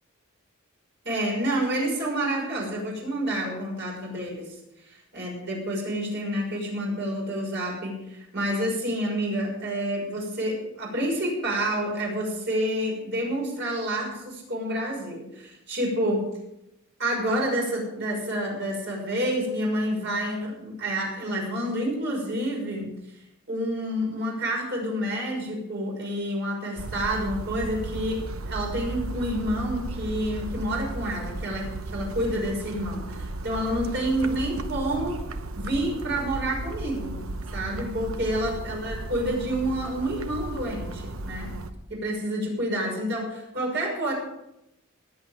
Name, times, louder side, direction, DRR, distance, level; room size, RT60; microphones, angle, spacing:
voice 1, 1.0-4.5 4.8-16.3 17.0-22.9 23.5-35.2 35.5-37.2 37.5-41.6 41.9-44.1, right 1 dB, 55° right, -1 dB, 6.1 m, -28 dB
sound 1, 26.8-41.7, right 2 dB, 80° right, 1.0 m, -35 dB
19.0 x 8.2 x 5.2 m, 0.86 s
head